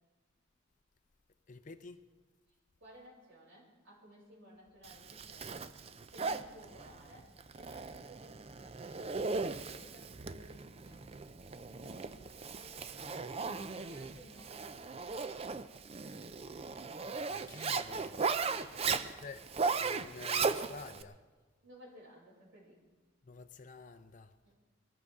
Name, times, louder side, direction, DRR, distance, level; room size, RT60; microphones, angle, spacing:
voice 1, 1.5-2.0 17.3-18.2 19.2-19.4 19.8-21.2 23.2-24.3, left 4 dB, 40° left, 0.6 m, -49 dB
voice 2, 2.5-5.8 6.1-8.8 9.5-11.1 11.7-13.0 13.8-15.3 18.5-19.0 21.6-22.8 24.4-24.6, equal, 70° right, 6.4 m, -57 dB
Zipper (clothing), 4.8-21.0, right 4 dB, 30° right, 0.4 m, -37 dB
22.0 x 14.0 x 3.6 m
head